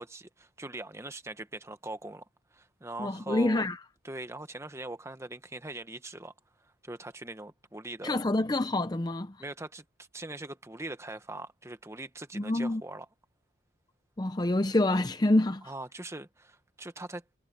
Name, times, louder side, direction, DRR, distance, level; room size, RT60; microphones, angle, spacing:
voice 1, 0.0-2.3 2.5-3.6 4.0-6.3 6.6-8.2 9.4-13.1 15.6-17.4, right 2 dB, 15° right, 1.2 m, -41 dB
voice 2, 3.0-3.8 8.0-9.4 12.3-12.8 14.2-15.6, left 1 dB, 20° left, 0.6 m, -27 dB
head